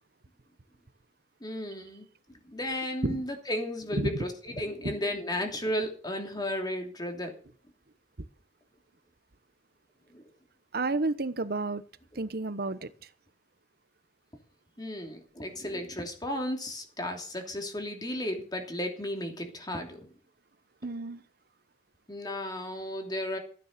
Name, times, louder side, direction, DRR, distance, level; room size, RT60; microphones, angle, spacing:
voice 1, 1.4-2.0 2.4-7.3 10.1-10.2 14.8-20.1 22.1-23.4, left 1 dB, 25° left, 2.9 m, -34 dB
voice 2, 10.7-11.8 12.2-12.9 20.8-21.2, right 2 dB, 60° right, 1.0 m, -31 dB
14.5 x 9.6 x 6.7 m
head